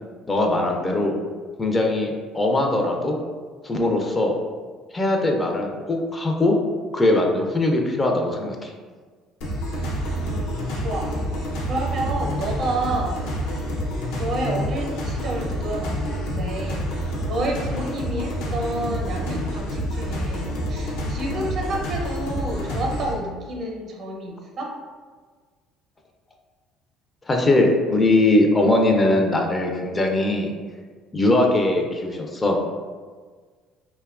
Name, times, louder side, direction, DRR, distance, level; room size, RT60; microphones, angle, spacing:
voice 1, 0.3-1.2 1.6-3.2 3.6-4.3 4.9-6.6 6.9-8.7 27.3-30.5 31.1-32.6, left 2 dB, 25° left, 2 dB, 0.4 m, -20 dB
sound 1, 9.4-23.1, equal, 80° left, 0.5 m, -28 dB
voice 2, 10.1-11.2 11.6-13.3 14.1-24.7, right 1 dB, 55° right, 0 dB, 0.6 m, -30 dB
2.7 x 2.1 x 2.3 m, 1.5 s
supercardioid pair, 80°, 0 cm